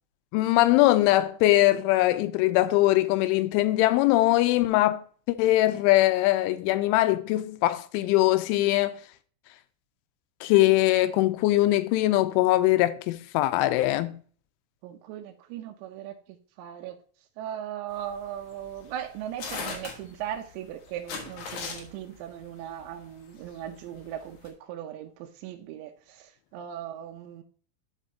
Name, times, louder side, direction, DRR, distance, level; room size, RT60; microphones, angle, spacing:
voice 1, 0.3-5.0 5.3-9.0 10.4-14.2, left 16 dB, 85° left, 3.0 m, -22 dB
voice 2, 14.8-16.2 16.6-17.0 17.4-27.4, right 10 dB, 80° right, 2.8 m, -38 dB
sound 1, 17.9-24.5, left 5 dB, 70° left, 1.9 m, -39 dB
11.5 x 5.0 x 2.7 m
omnidirectional pair, 5.5 m